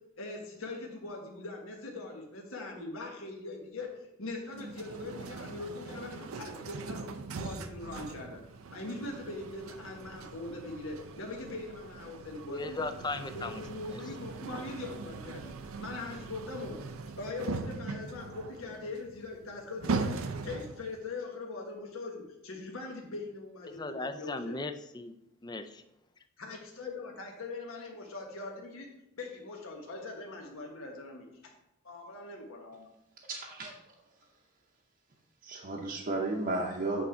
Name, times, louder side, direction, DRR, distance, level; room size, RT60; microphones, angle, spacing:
voice 1, 0.2-3.9 4.2-7.1 7.4-8.4 8.7-12.8 13.3-16.8 17.2-20.1 20.4-24.6 26.4-28.9 29.2-31.3 31.8-32.9, left 3 dB, 75° left, 0 dB, 1.3 m, -41 dB
sound 1, 4.5-20.9, right 4 dB, 85° right, 0.5 m, -40 dB
voice 2, 12.5-13.6 23.7-25.1 25.4-25.8, left 3 dB, 20° left, 9 dB, 0.4 m, -37 dB
voice 3, 33.3-33.9 35.4-37.1, right 2 dB, 45° right, -2 dB, 0.8 m, -34 dB
8.4 x 3.6 x 4.4 m, 0.88 s
head